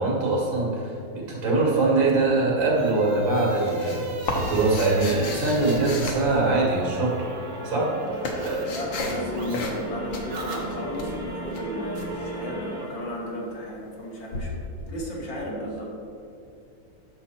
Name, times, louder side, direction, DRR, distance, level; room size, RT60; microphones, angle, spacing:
voice 1, 0.0-7.3 7.6-7.9, right 3 dB, 85° right, -3 dB, 2.7 m, -23 dB
sound 1, 2.0-8.6 8.9-11.2, right 1 dB, 45° right, 1.3 m, -36 dB
sound 2, 3.1-6.9 7.7-9.2 9.5-9.8 10.1-12.1 14.3-14.4, left 3 dB, 90° left, 1.9 m, -34 dB
sound 3, 6.6-12.9, right 1 dB, 25° right, 2.5 m, -36 dB
voice 2, 8.6-16.0, equal, 75° left, -3 dB, 2.4 m, -34 dB
10.5 x 6.4 x 4.3 m, 2.6 s
omnidirectional pair, 2.0 m